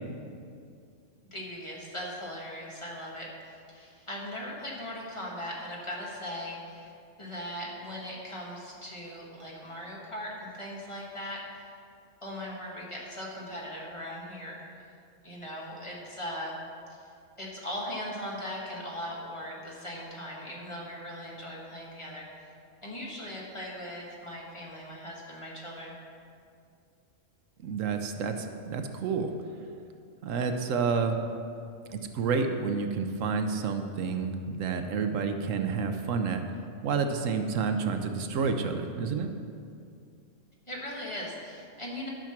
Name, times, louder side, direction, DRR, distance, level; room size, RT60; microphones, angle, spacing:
voice 1, 1.3-6.9 7.2-11.7 12.2-14.6 15.2-16.6 16.9-17.1 17.4-22.5 22.8-25.9 40.7-42.1, equal, 25° left, -4 dB, 1.7 m, -39 dB
voice 2, 27.6-29.3 30.2-31.2 31.9-36.5 36.8-39.3, right 5 dB, 80° right, 6 dB, 1.1 m, -29 dB
11.5 x 5.9 x 5.9 m, 2.4 s
omnidirectional pair, 1.3 m